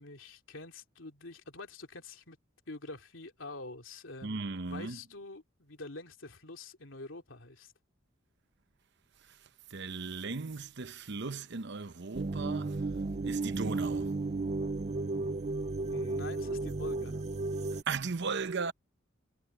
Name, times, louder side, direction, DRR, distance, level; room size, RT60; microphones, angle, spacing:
voice 1, 0.0-2.4 2.7-7.7 15.9-17.2, left 2 dB, 75° left, 3.1 m, -46 dB
voice 2, 4.2-5.0 9.7-12.8 13.2-14.1 17.9-18.7, right 4 dB, 60° right, 0.9 m, -36 dB
sound 1, 12.1-17.8, right 3 dB, 35° right, 0.5 m, -33 dB
head